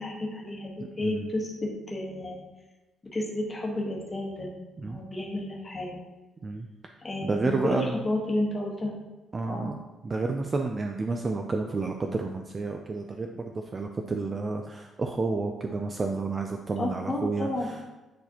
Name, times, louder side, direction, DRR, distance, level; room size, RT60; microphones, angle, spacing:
voice 1, 0.0-2.4 3.1-4.5 4.8-6.0 7.0-9.0 9.5-9.7 16.8-17.7, left 1 dB, 20° left, -2 dB, 1.2 m, -31 dB
voice 2, 0.8-1.3 4.8-5.0 6.4-6.7 7.2-8.0 9.3-17.9, right 3 dB, 25° right, 4 dB, 0.3 m, -31 dB
9.2 x 4.1 x 2.8 m, 1.1 s
cardioid pair, 160°, 0 cm